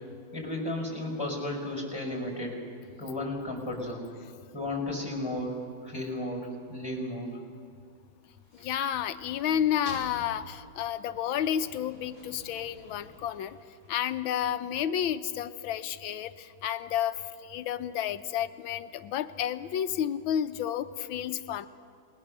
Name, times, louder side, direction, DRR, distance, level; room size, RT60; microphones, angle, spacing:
voice 1, 0.3-2.6 3.0-4.1 4.5-5.6 5.8-7.3, left 1 dB, 10° left, 1 dB, 5.3 m, -34 dB
sound 1, 8.2-14.2, right 1 dB, 50° right, 7.2 m, -51 dB
voice 2, 8.5-13.6 13.9-21.7, left 10 dB, 85° left, 11 dB, 1.6 m, -31 dB
28.0 x 20.0 x 6.6 m, 2.2 s
omnidirectional pair, 2.1 m